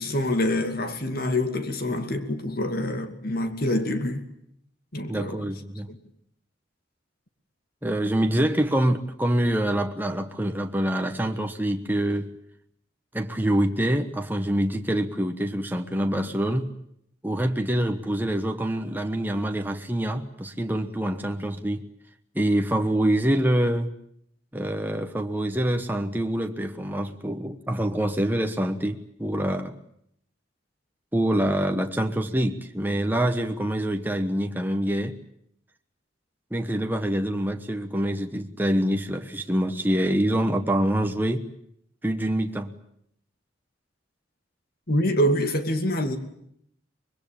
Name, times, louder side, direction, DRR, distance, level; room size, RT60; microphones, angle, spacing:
voice 1, 0.0-4.2 4.9-5.5 5.9-6.0 44.9-46.2, left 1 dB, 50° left, 2.5 m, -26 dB
voice 2, 5.1-5.9 7.8-12.3 13.1-16.7 17.2-21.8 22.3-23.9 24.5-29.8 31.1-35.2 36.5-41.5 42.0-42.7, right 1 dB, 10° right, 1.2 m, -25 dB
24.5 x 22.0 x 8.8 m
head